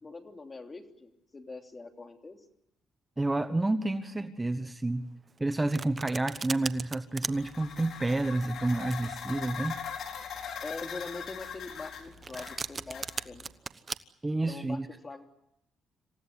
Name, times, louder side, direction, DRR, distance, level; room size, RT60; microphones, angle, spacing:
voice 1, 0.0-2.4 10.6-13.5 14.5-15.2, left 3 dB, 30° left, 4 dB, 3.1 m, -43 dB
voice 2, 3.2-5.1 5.4-9.8 14.2-14.9, right 2 dB, 15° right, 10 dB, 1.2 m, -29 dB
Domestic sounds home sounds, 5.3-14.0, right 4 dB, 35° right, 1.0 m, -39 dB
sound 1, 7.3-13.5, left 7 dB, 65° left, 4.3 m, -41 dB
27.5 x 16.0 x 9.8 m, 0.83 s
cardioid pair, 90°, 0 cm